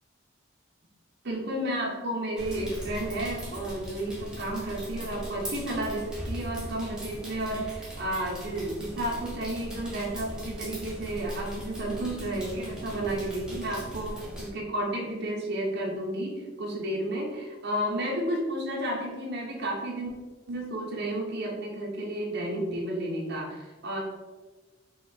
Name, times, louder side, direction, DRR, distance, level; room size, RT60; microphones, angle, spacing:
voice 1, 1.2-20.1 20.5-24.0, right 1 dB, 60° right, -3 dB, 0.8 m, -32 dB
sound 1, 2.4-14.5, equal, 5° right, 1.0 m, -39 dB
4.1 x 2.8 x 4.2 m, 1.3 s
head